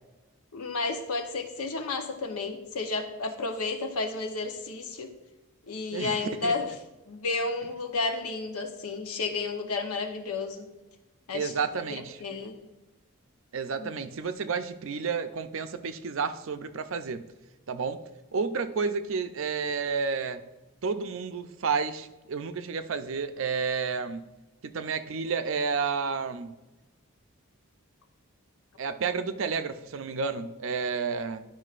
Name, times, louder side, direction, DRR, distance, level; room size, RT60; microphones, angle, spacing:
voice 1, 0.5-5.1 5.7-6.7 7.1-10.7 11.3-11.5 12.2-12.6 13.8-13.9, left 3 dB, 90° left, 5 dB, 0.9 m, -32 dB
voice 2, 5.9-6.5 11.3-12.2 13.5-17.3 17.7-18.0 18.3-20.4 20.8-24.3 24.6-26.6 28.8-31.4, right 5 dB, 65° right, 10 dB, 0.5 m, -31 dB
11.0 x 5.7 x 2.5 m, 1.1 s
head